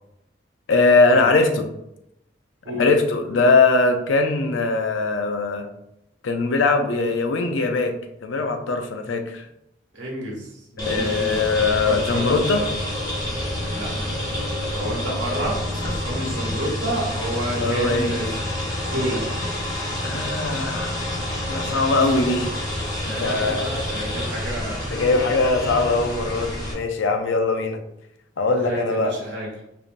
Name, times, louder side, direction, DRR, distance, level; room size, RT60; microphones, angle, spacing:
voice 1, 0.7-1.7 2.8-5.7 6.2-9.5 10.9-12.7 17.6-18.1 20.0-21.0 21.5-22.5 23.0-23.7 24.9-27.8 28.4-29.2, left 3 dB, 85° left, 5 dB, 0.5 m, -21 dB
voice 2, 9.9-11.4 11.8-12.3 13.7-18.4 18.8-19.2 22.1-22.3 23.0-25.1 28.6-29.6, right 1 dB, 80° right, -3 dB, 1.4 m, -30 dB
sound 1, 10.8-26.7, left 1 dB, 20° left, 1.0 m, -28 dB
4.7 x 2.6 x 2.5 m, 0.81 s
head